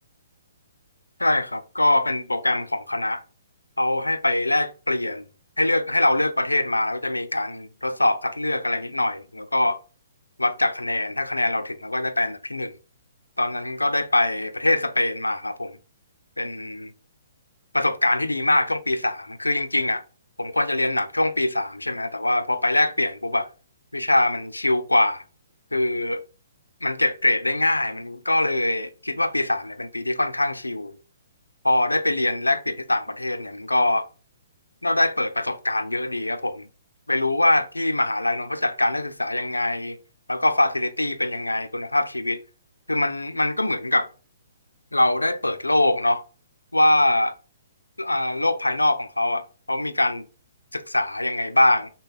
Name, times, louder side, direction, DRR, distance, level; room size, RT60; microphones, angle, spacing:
voice 1, 1.2-3.2 3.8-5.3 5.6-9.8 10.4-12.7 13.4-15.8 16.4-16.9 17.7-20.0 20.4-23.5 23.9-25.2 25.7-26.2 26.8-30.9 31.6-34.1 34.8-36.7 37.1-40.0 40.3-42.4 42.9-44.1 44.9-46.2 46.7-47.3 48.0-50.2 50.7-51.9, left 1 dB, 85° left, 0.3 m, -23 dB
6.3 x 2.2 x 2.3 m
figure-of-eight pair, 125°, 0 cm